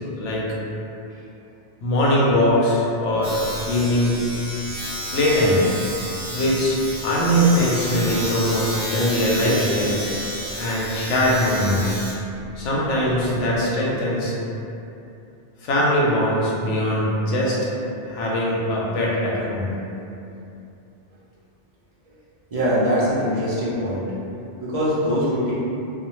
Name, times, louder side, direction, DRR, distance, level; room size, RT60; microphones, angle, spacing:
voice 1, 0.2-0.5 1.8-3.4 3.7-4.2 5.1-5.7 6.3-10.0 10.6-12.0 12.6-14.3 15.6-17.6 18.1-19.7, equal, 85° left, -5 dB, 0.9 m, -21 dB
Domestic sounds home sounds, 3.2-13.6, equal, 10° right, 0.7 m, -31 dB
voice 2, 22.5-24.0 24.6-25.5, equal, 45° right, -10 dB, 0.5 m, -22 dB
2.4 x 2.1 x 3.0 m, 2.7 s
omnidirectional pair, 1.2 m